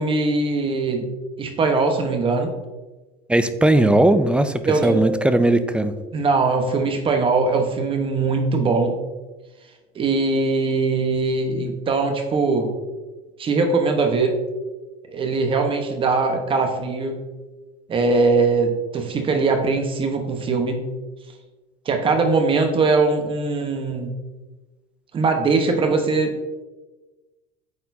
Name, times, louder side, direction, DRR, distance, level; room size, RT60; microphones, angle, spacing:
voice 1, 0.0-2.5 4.6-5.0 6.1-9.0 9.9-12.7 13.4-14.4 15.1-17.2 17.9-20.9 21.8-24.1 25.1-26.3, right 3 dB, 35° right, 5 dB, 1.1 m, -21 dB
voice 2, 3.3-5.9, right 1 dB, 5° right, 11 dB, 0.4 m, -18 dB
sound 1, 4.8-6.3, right 2 dB, 65° right, 1.8 m, -33 dB
8.5 x 4.3 x 2.7 m, 1.2 s
supercardioid pair, 105°, 16 cm